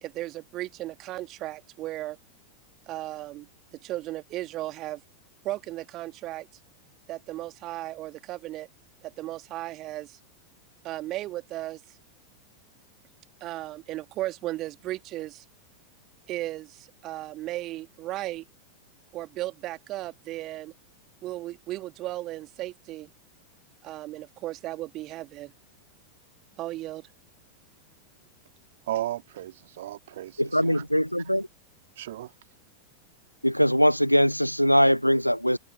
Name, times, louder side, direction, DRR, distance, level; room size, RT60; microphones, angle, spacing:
voice 1, 0.0-2.2 2.9-3.5 3.8-5.0 5.4-6.5 7.1-8.7 9.0-10.2 10.8-11.8 13.4-15.4 16.3-18.4 19.1-20.7 21.2-23.1 23.8-25.5 26.6-27.0, right 16 dB, 35° right, 1.9 m, -35 dB
voice 2, 28.9-30.8 32.0-32.3, right 13 dB, 55° right, 1.9 m, -35 dB
voice 3, 30.4-31.5 33.4-35.6, equal, 90° left, 0.6 m, -21 dB
open air
figure-of-eight pair, 90°, 0 cm